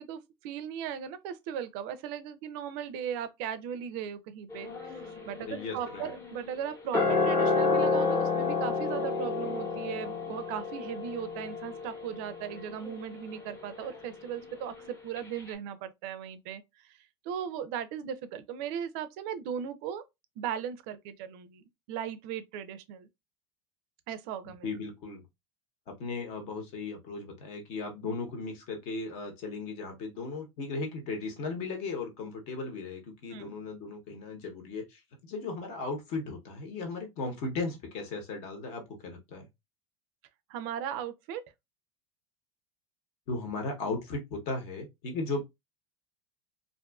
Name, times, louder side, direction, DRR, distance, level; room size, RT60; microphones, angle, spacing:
voice 1, 0.0-20.0 20.4-23.1 24.1-24.7 33.3-33.5 40.5-41.4, right 9 dB, 60° right, 0.4 m, -38 dB
sound 1, 4.5-14.9 15.2-15.3, left 4 dB, 20° left, 0.8 m, -31 dB
voice 2, 5.4-6.1 24.5-25.2 25.9-39.5 43.3-45.4, left 3 dB, 55° left, 1.0 m, -36 dB
2.5 x 2.3 x 2.3 m
supercardioid pair, 125°, 14 cm